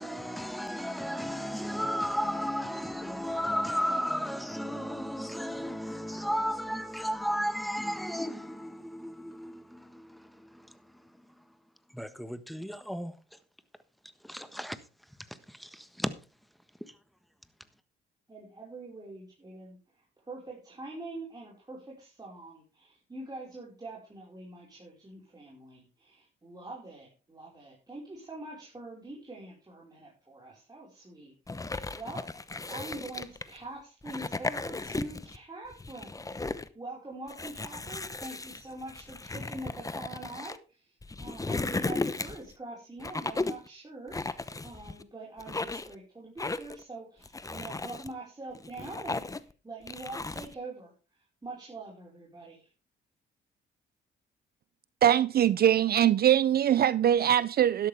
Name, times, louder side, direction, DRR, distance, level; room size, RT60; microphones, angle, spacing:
voice 1, 0.0-11.1 11.9-13.2 14.2-14.8 15.3-16.1 16.8-16.9, equal, ahead, 1.4 m, -34 dB
voice 2, 18.3-32.3 32.7-40.9 41.2-50.9 51.4-52.7, right 2 dB, 20° right, 5.2 m, -44 dB
sound 1, 31.5-33.6 34.0-35.4 35.7-36.7 37.3-40.6 41.0-42.5 43.0-43.7 44.1-45.0 45.4-45.9 46.4-46.8 47.2-48.1 48.5-49.5 49.9-50.5, left 3 dB, 15° left, 0.9 m, -35 dB
voice 3, 55.0-57.9, right 10 dB, 50° right, 0.5 m, -22 dB
12.5 x 11.5 x 3.5 m
cardioid pair, 90°, 20 cm